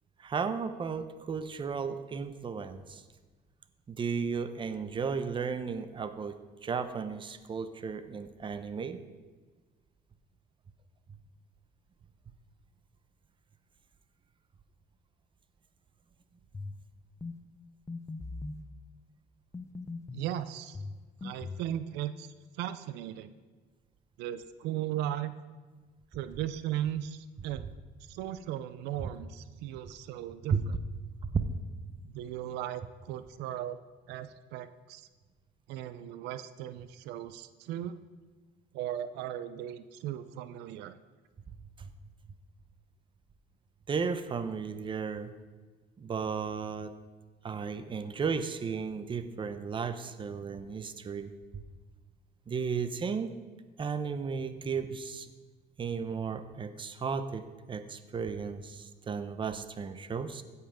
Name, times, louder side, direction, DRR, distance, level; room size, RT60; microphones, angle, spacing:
voice 1, 0.2-3.0 3.9-6.4 6.6-9.0 29.0-29.1 30.5-30.6 31.2-31.4 41.8-41.9 43.9-45.3 46.0-46.9 47.4-51.6 52.5-53.3 53.8-55.3 55.8-60.4, right 5 dB, 30° right, 10 dB, 0.7 m, -34 dB
sound 1, 16.5-16.8 17.2-17.4 17.9-18.6 19.5-20.3 20.7-21.7, left 3 dB, 15° left, 0.6 m, -40 dB
voice 2, 20.1-20.8 21.2-22.3 22.6-23.3 24.2-25.3 26.1-27.7 28.0-30.7 32.1-33.8 34.1-35.1 35.7-37.9 38.7-41.0, right 11 dB, 90° right, 13 dB, 0.5 m, -37 dB
16.0 x 5.6 x 5.0 m, 1.4 s
cardioid pair, 110°, 17 cm